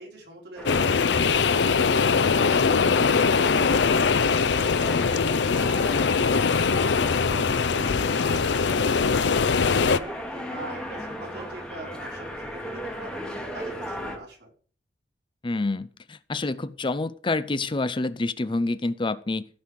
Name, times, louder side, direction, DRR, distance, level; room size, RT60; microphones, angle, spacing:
voice 1, 0.0-13.2 13.5-14.5, right 1 dB, 65° right, -2 dB, 5.1 m, -43 dB
sound 1, 0.6-14.2, equal, 5° left, 2.3 m, -37 dB
sound 2, 0.7-10.0, left 5 dB, 80° left, 0.6 m, -22 dB
Bark, 4.5-5.6 6.2-7.4 7.8-8.0 9.1-9.3 9.8-10.6 11.3-11.7, right 2 dB, 35° right, 2.6 m, -47 dB
voice 2, 15.4-19.5, left 2 dB, 30° left, 14 dB, 0.6 m, -28 dB
15.5 x 5.6 x 6.4 m, 0.43 s
head